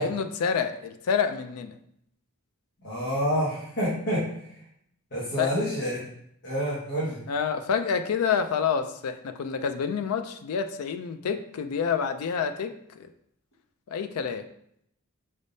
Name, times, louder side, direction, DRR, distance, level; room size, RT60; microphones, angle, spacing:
voice 1, 0.0-1.8 5.4-5.5 7.3-13.1 13.9-14.5, left 6 dB, 70° left, 8 dB, 0.4 m, -28 dB
voice 2, 2.8-4.2 5.1-6.0 6.4-7.2, equal, 50° left, -7 dB, 1.3 m, -28 dB
5.2 x 3.4 x 2.6 m, 0.72 s
head